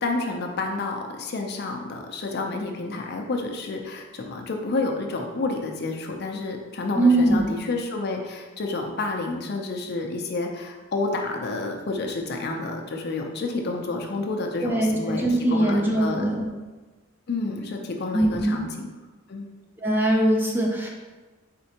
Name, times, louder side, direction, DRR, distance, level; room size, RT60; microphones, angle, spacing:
voice 1, 0.0-16.3 17.3-18.9 19.3-19.5, left 3 dB, 50° left, 2 dB, 0.5 m, -29 dB
voice 2, 7.0-7.4 14.6-16.5 18.1-18.6 19.8-20.9, right 1 dB, 10° right, -1 dB, 0.4 m, -21 dB
4.2 x 3.7 x 2.8 m, 1.2 s
head